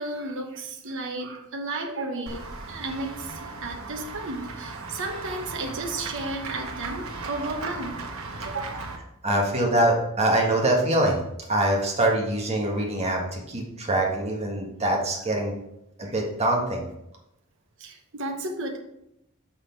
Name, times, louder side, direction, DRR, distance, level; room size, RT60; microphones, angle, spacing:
voice 1, 0.0-8.0 8.4-8.8 16.0-16.1 17.8-18.8, right 2 dB, 60° right, 2 dB, 1.1 m, -33 dB
Run / Walk footsteps / Bell, 2.3-9.0, right 3 dB, 85° right, 1.3 m, -37 dB
voice 2, 9.2-11.2 11.5-15.6 16.0-16.9, right 1 dB, 30° right, 0 dB, 1.7 m, -24 dB
6.4 x 6.0 x 4.6 m, 0.83 s
head